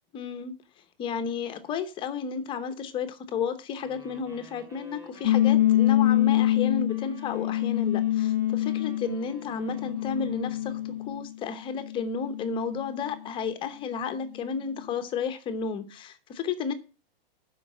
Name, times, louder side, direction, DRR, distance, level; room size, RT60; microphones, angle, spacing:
voice 1, 0.1-0.6 1.0-16.7, left 6 dB, 15° left, 10 dB, 0.9 m, -32 dB
Wind instrument woodwind instrument, 3.8-11.2, equal, 10° right, 2.7 m, -52 dB
sound 1, 5.2-11.3 11.7-13.1, left 13 dB, 60° left, 0.5 m, -25 dB
12.5 x 5.3 x 7.4 m, 0.33 s
hypercardioid pair, 160°, 30 cm